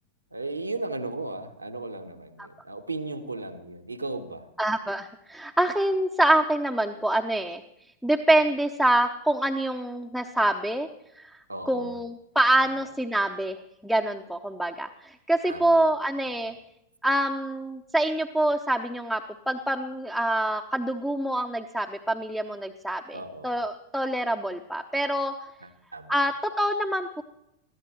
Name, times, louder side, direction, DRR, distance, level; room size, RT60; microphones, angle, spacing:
voice 1, 0.3-4.5 11.5-12.0 12.5-12.7 15.5-15.9 16.3-16.5 23.1-23.5 25.9-26.2, right 2 dB, 85° right, 7 dB, 1.2 m, -36 dB
voice 2, 4.6-7.6 8.0-10.9 11.2-11.4 11.7-13.6 13.8-16.5 17.0-25.3 26.1-27.2, right 1 dB, ahead, 5 dB, 0.7 m, -26 dB
21.5 x 14.5 x 3.1 m, 0.81 s
figure-of-eight pair, 90°, 0 cm